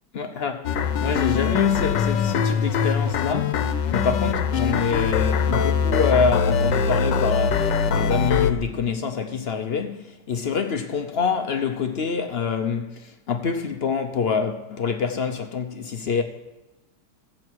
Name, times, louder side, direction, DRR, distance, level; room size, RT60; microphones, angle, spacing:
voice 1, 0.1-16.2, left 5 dB, 60° left, 0.6 m, -26 dB
sound 1, 0.6-8.5, left 6 dB, 85° left, 1.4 m, -22 dB
16.0 x 7.6 x 4.6 m
omnidirectional pair, 1.9 m